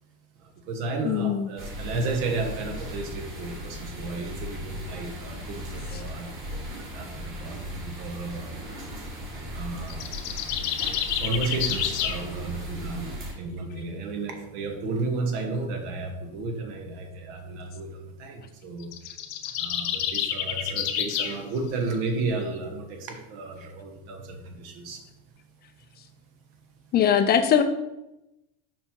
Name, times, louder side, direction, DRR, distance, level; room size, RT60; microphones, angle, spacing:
voice 1, 0.4-8.8 9.5-10.1 11.2-18.9 19.6-25.1, right 3 dB, 65° right, 4 dB, 1.4 m, -33 dB
voice 2, 1.1-1.5 26.9-27.6, left 8 dB, 30° left, 9 dB, 0.4 m, -21 dB
sound 1, 1.6-13.3, equal, 40° right, 2.5 m, -37 dB
sound 2, 9.9-12.2 18.8-21.4, left 9 dB, 55° left, 0.9 m, -29 dB
6.7 x 4.9 x 4.5 m, 0.94 s
supercardioid pair, 135°, 33 cm